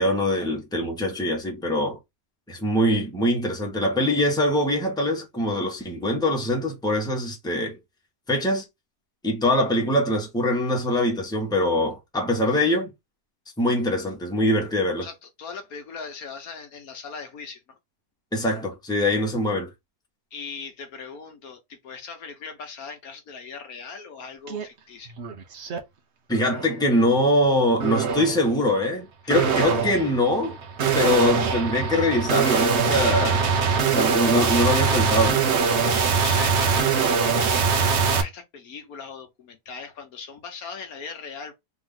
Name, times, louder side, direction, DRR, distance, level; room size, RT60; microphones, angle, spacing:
voice 1, 0.0-2.0 2.5-7.8 8.3-8.6 9.2-12.9 13.6-15.1 18.3-19.7 26.3-30.6 30.9-33.5 33.9-35.4, left 1 dB, 5° left, 1.1 m, -23 dB
voice 2, 15.0-17.8 20.3-25.1 35.6-41.5, left 5 dB, 65° left, 1.3 m, -39 dB
sound 1, 24.5-24.7 25.1-25.8 26.3-26.7 27.8-28.4 29.3-38.2, right 5 dB, 50° right, 1.0 m, -23 dB
3.6 x 3.0 x 3.7 m
omnidirectional pair, 1.7 m